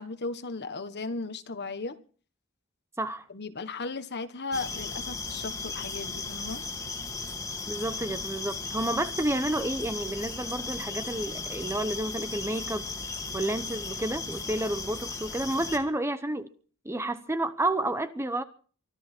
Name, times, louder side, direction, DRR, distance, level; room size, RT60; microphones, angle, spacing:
voice 1, 0.0-2.0 3.3-6.6, left 3 dB, 50° left, 1.4 m, -36 dB
sound 1, 4.5-15.8, left 4 dB, 15° left, 2.1 m, -36 dB
voice 2, 7.7-12.9 13.3-16.5 16.8-18.4, right 1 dB, 10° right, 0.9 m, -30 dB
24.0 x 13.0 x 4.5 m
head